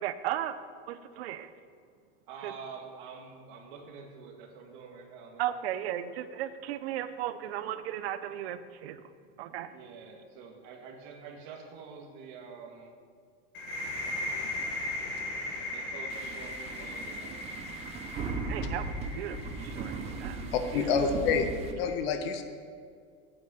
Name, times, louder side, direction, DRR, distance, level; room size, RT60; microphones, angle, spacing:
voice 1, 0.0-0.5 0.9-1.5 2.4-2.5 5.4-9.0 9.4-9.7 18.5-19.9 20.2-20.4 20.7-21.2, right 11 dB, 85° right, 12 dB, 0.8 m, -35 dB
voice 2, 2.3-5.9 9.7-12.9 15.7-17.3 20.6-20.8, right 5 dB, 50° right, 2 dB, 1.9 m, -47 dB
sound 1, 13.5-21.1, left 1 dB, 35° left, 1.8 m, -38 dB
sound 2, 16.1-21.7, right 3 dB, 20° right, 0.7 m, -37 dB
voice 3, 20.5-21.5 21.8-22.4, left 6 dB, 75° left, 7 dB, 1.3 m, -27 dB
9.1 x 8.1 x 7.6 m, 2.1 s
supercardioid pair, 180°, 30 cm